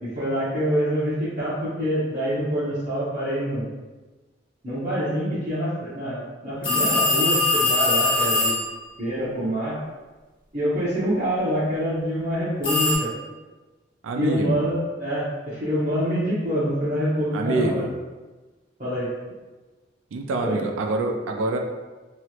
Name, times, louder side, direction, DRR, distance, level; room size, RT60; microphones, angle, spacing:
voice 1, 0.0-3.7 4.6-8.6 9.0-9.8 10.5-13.1 14.2-17.9 18.8-19.1 20.4-20.6, equal, 40° right, -13 dB, 0.9 m, -26 dB
sound 1, 6.6-8.7 12.6-13.0, left 2 dB, 25° left, 1.4 m, -21 dB
voice 2, 14.0-14.6 17.3-17.9 20.1-21.6, right 2 dB, 85° right, 3 dB, 0.4 m, -26 dB
3.0 x 2.9 x 2.4 m, 1.2 s
head